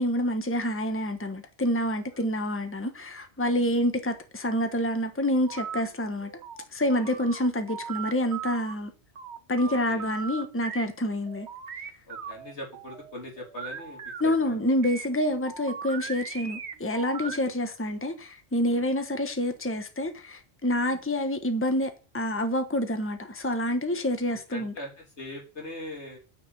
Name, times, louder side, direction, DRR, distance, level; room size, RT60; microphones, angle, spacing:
voice 1, 0.0-6.3 6.7-8.9 9.5-11.5 14.2-24.7, left 1 dB, 10° left, 1.3 m, -27 dB
sound 1, 5.5-5.8 6.2-8.7 9.2-10.8 11.3-14.2 14.8-17.6, right 6 dB, 80° right, 1.3 m, -39 dB
voice 2, 9.6-10.1 12.1-14.6 15.3-15.4 17.2-17.5 18.6-18.9 20.8-21.0 24.3-26.2, left 1 dB, 85° left, 3.7 m, -42 dB
9.7 x 6.0 x 8.3 m
omnidirectional pair, 1.1 m